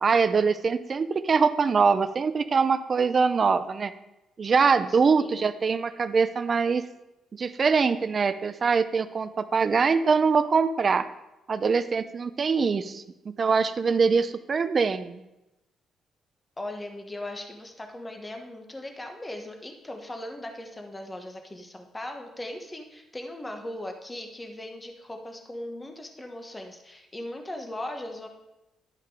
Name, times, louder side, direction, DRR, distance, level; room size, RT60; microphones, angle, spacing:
voice 1, 0.0-3.9 4.4-6.8 7.3-11.0 11.5-15.2, right 5 dB, 40° right, 13 dB, 0.6 m, -23 dB
voice 2, 4.9-5.5 16.6-28.3, left 1 dB, 15° left, 4 dB, 1.3 m, -38 dB
11.0 x 5.6 x 4.8 m, 0.95 s
cardioid pair, 90°, 0 cm